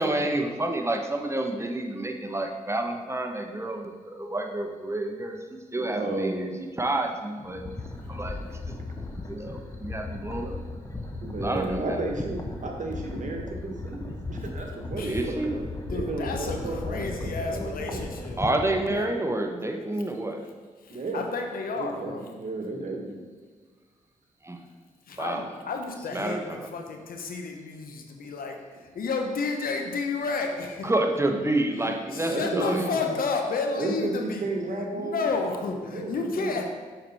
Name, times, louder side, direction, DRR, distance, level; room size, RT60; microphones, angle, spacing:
voice 1, 0.0-5.4 5.7-6.5 6.8-7.6 8.1-8.8 9.3-10.6 11.4-12.0 15.0-15.6 18.4-20.4 24.4-24.6 25.2-25.4 26.1-26.7 30.8-32.9, right 1 dB, 15° right, 3 dB, 1.0 m, -29 dB
voice 2, 5.7-6.6 7.6-7.7 11.2-15.6 15.9-18.1 18.8-19.2 20.9-21.4 21.7-23.1 32.3-33.2 33.8-35.4 35.9-36.6, right 2 dB, 50° right, 2 dB, 1.3 m, -33 dB
sound 1, 7.4-19.0, left 2 dB, 20° left, 0.9 m, -36 dB
voice 3, 15.9-18.4 18.9-19.1 20.8-22.3 25.1-30.9 31.8-34.5 34.8-36.6, left 4 dB, 65° left, 3 dB, 0.9 m, -31 dB
6.6 x 4.5 x 4.2 m, 1.5 s
supercardioid pair, 40°, 16 cm